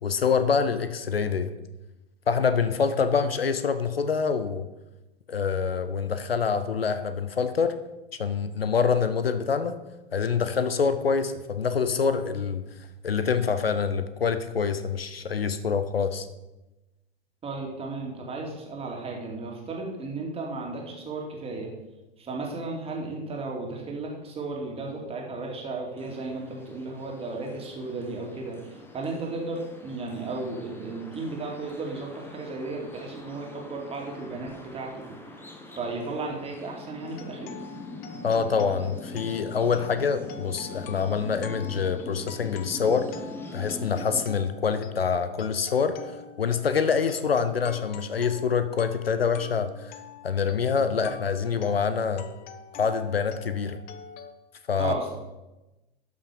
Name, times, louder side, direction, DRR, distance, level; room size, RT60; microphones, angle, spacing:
voice 1, 0.0-1.5 2.3-4.7 5.3-7.7 8.2-9.8 10.1-12.6 13.0-16.3 38.2-43.1 43.5-50.0 50.2-52.3 52.7-53.8 54.7-54.9, left 6 dB, 75° left, 11 dB, 0.8 m, -26 dB
voice 2, 17.4-21.7 22.2-35.2 35.7-37.5 54.8-55.1, right 3 dB, 20° right, -1 dB, 2.5 m, -34 dB
sound 1, 26.0-44.3, left 2 dB, 5° left, 1.1 m, -43 dB
sound 2, 37.0-54.3, left 8 dB, 30° left, 0.7 m, -45 dB
12.5 x 5.9 x 4.7 m, 1.0 s
figure-of-eight pair, 95°, 30 cm